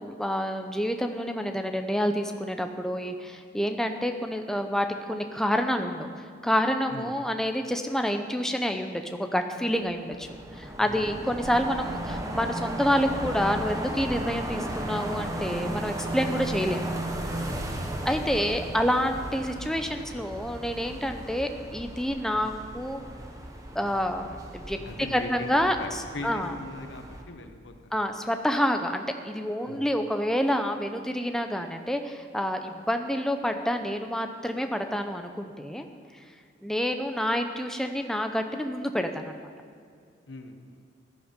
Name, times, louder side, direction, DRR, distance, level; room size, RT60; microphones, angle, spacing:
voice 1, 0.0-6.1 6.4-10.3 10.6-16.9 18.0-23.0 23.7-26.5 27.9-35.9 36.6-39.5, equal, 5° left, 5 dB, 0.7 m, -28 dB
sound 1, 9.9-27.2, right 1 dB, 20° right, 1.0 m, -35 dB
voice 2, 10.8-11.1 18.3-18.5 24.8-28.1 29.6-29.9 40.3-40.8, left 2 dB, 70° left, 5 dB, 1.0 m, -40 dB
15.5 x 11.0 x 5.2 m, 2.2 s
head